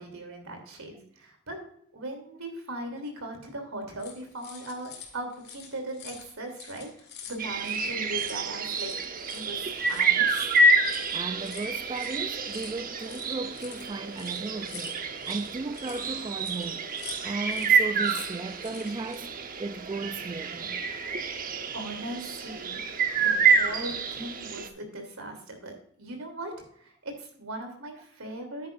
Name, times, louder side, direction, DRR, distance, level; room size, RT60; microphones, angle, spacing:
voice 1, 0.0-8.9 9.3-10.5 21.7-22.8 23.2-28.7, right 1 dB, 85° right, 3.2 m, -39 dB
sound 1, 4.0-19.2, left 7 dB, 50° left, 2.3 m, -47 dB
sound 2, 7.4-24.7, right 4 dB, 40° right, 0.9 m, -28 dB
voice 2, 11.1-15.0 15.3-16.8 17.2-19.3 19.6-20.8 22.5-22.6, right 3 dB, 25° right, 0.3 m, -35 dB
10.5 x 9.4 x 2.6 m
head